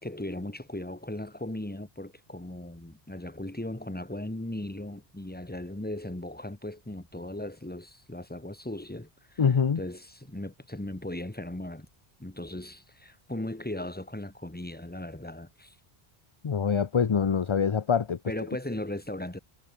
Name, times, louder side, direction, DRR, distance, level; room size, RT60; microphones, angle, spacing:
voice 1, 0.0-9.4 9.8-11.9 12.2-15.7 18.3-19.4, left 1 dB, 10° left, 1.5 m, -37 dB
voice 2, 9.4-9.8 16.4-18.2, left 6 dB, 35° left, 0.5 m, -24 dB
omnidirectional pair, 1.1 m